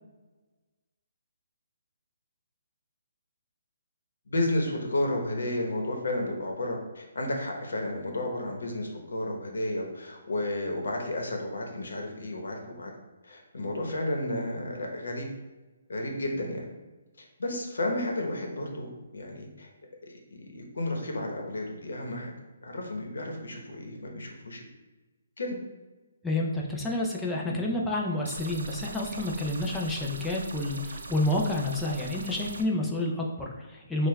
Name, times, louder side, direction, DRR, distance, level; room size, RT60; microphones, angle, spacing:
voice 1, 4.3-12.9 13.2-15.3 15.9-16.6 17.2-19.7 20.0-22.3 22.6-24.6 25.4-25.6 27.5-27.6, left 1 dB, 85° left, 1 dB, 0.9 m, -32 dB
voice 2, 26.2-34.1, left 1 dB, 5° left, -3 dB, 0.3 m, -29 dB
sound 1, 28.2-32.6, right 3 dB, 85° right, 0.4 m, -41 dB
6.4 x 2.2 x 2.3 m, 1.2 s
hypercardioid pair, 175°, 0 cm